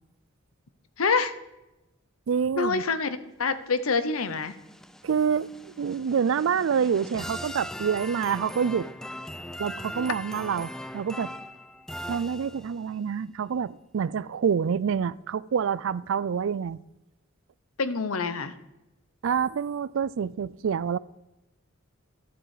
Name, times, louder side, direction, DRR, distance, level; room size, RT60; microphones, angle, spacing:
voice 1, 1.0-1.3 2.5-4.6 17.8-18.5, left 4 dB, 80° left, 0.8 m, -26 dB
voice 2, 2.3-2.8 5.0-5.5 5.8-8.9 9.6-11.3 12.1-16.8 19.2-21.0, right 7 dB, 65° right, 0.4 m, -27 dB
sound 1, 4.0-12.9, equal, ahead, 0.4 m, -40 dB
12.0 x 7.7 x 4.9 m
head